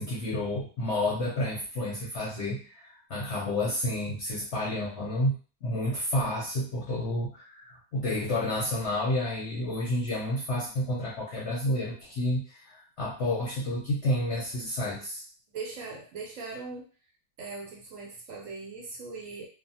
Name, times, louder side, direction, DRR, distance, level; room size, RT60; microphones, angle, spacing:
voice 1, 0.0-5.3 5.6-15.2, left 1 dB, 55° left, -6 dB, 0.8 m, -30 dB
voice 2, 15.5-16.8 17.4-19.5, right 4 dB, 65° right, 0 dB, 0.9 m, -40 dB
2.4 x 2.4 x 2.7 m, 0.38 s
omnidirectional pair, 1.7 m